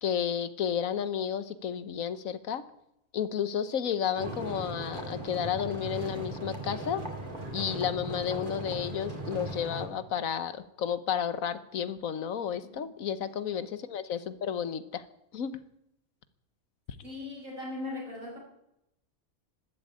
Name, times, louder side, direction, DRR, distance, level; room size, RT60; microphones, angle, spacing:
voice 1, 0.0-2.6 3.1-7.0 7.5-15.0 15.3-15.6, left 8 dB, 80° left, 13 dB, 1.4 m, -32 dB
sound 1, 4.2-9.9, right 1 dB, 35° right, 2.7 m, -38 dB
voice 2, 17.0-18.4, left 2 dB, 80° right, -2 dB, 6.2 m, -39 dB
12.5 x 12.5 x 8.7 m, 0.83 s
omnidirectional pair, 1.4 m